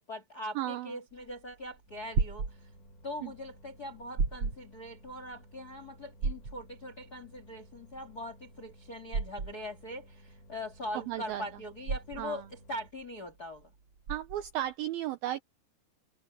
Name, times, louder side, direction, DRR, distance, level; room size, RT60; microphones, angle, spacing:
voice 1, 0.0-2.5 3.0-12.4 12.7-13.7, left 1 dB, 55° left, 1.0 m, -41 dB
voice 2, 0.6-1.0 3.2-3.3 10.9-11.5 12.1-12.5 14.1-15.4, right 13 dB, 90° right, 2.1 m, -35 dB
sound 1, 1.1-14.7, right 4 dB, 35° right, 3.2 m, -36 dB
sound 2, 1.9-12.9, equal, 80° left, 5.4 m, -57 dB
open air
omnidirectional pair, 5.1 m